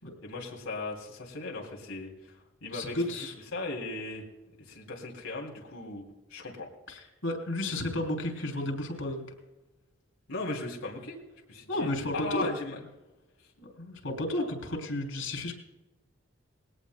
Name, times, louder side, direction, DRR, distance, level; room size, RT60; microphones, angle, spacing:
voice 1, 0.2-3.3 3.5-4.2 4.6-6.0 6.3-6.7 10.3-11.2 11.5-12.8, left 2 dB, 85° left, -1 dB, 2.9 m, -38 dB
voice 2, 2.7-3.3 6.9-9.2 11.7-12.5 13.6-15.5, left 1 dB, 70° left, 3 dB, 3.5 m, -32 dB
20.5 x 17.5 x 2.2 m, 1.1 s
head